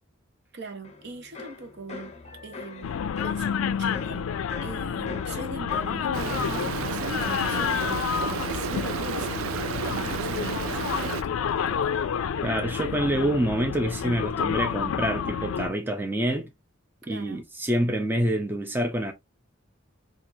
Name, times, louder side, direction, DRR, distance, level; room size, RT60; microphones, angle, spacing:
voice 1, 0.5-2.1 2.4-2.9 3.2-4.3 4.6-9.6 9.9-11.9 17.1-17.4, right 3 dB, 55° right, 0.8 m, -41 dB
sound 1, 0.8-12.5 12.7-13.3, left 4 dB, 30° left, 0.7 m, -43 dB
sound 2, 2.8-15.7, left 7 dB, 75° left, 0.3 m, -29 dB
Stream, 6.1-11.2, right 8 dB, 75° right, 0.3 m, -32 dB
voice 2, 12.4-16.5 17.1-19.1, right 1 dB, 10° right, 0.5 m, -27 dB
4.5 x 2.5 x 2.6 m
head